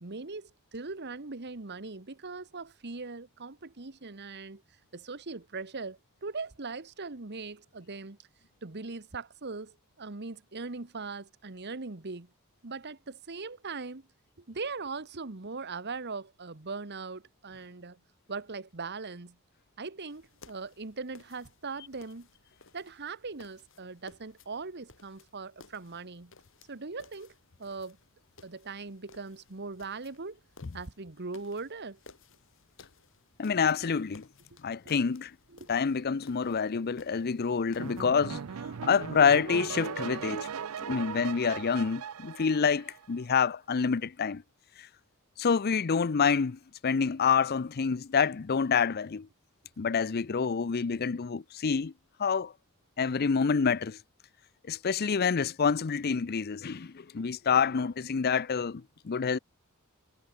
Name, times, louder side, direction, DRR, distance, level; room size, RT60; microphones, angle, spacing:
voice 1, 0.0-4.6 4.9-8.2 8.6-12.3 12.6-14.1 14.4-18.0 18.3-19.4 19.8-22.3 22.7-26.3 26.7-27.3 27.6-28.0 28.4-30.4 30.7-32.0 35.5-35.7 40.9-41.0, right 4 dB, 50° right, 1.3 m, -40 dB
sound 1, 20.1-38.4, left 3 dB, 60° left, 5.5 m, -58 dB
voice 2, 33.4-34.2 34.6-35.3 35.7-38.4 38.8-40.5 40.8-44.4 44.8-44.9 45.4-49.3 49.8-51.9 52.2-52.5 53.0-54.0 54.7-59.4, left 6 dB, 45° left, 0.5 m, -27 dB
sound 2, 37.8-43.2, right 7 dB, 70° right, 0.5 m, -38 dB
head